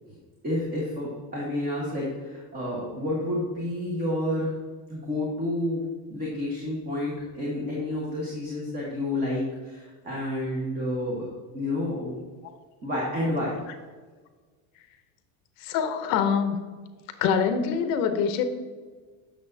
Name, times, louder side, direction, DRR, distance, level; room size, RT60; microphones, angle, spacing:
voice 1, 0.4-4.6 4.9-11.3 11.5-12.2 12.8-13.6, left 1 dB, 20° right, -4 dB, 1.4 m, -30 dB
voice 2, 15.6-16.6 17.2-18.4, left 7 dB, 50° left, 8 dB, 0.7 m, -24 dB
8.4 x 6.6 x 2.7 m, 1.4 s
cardioid pair, 165°, 45 cm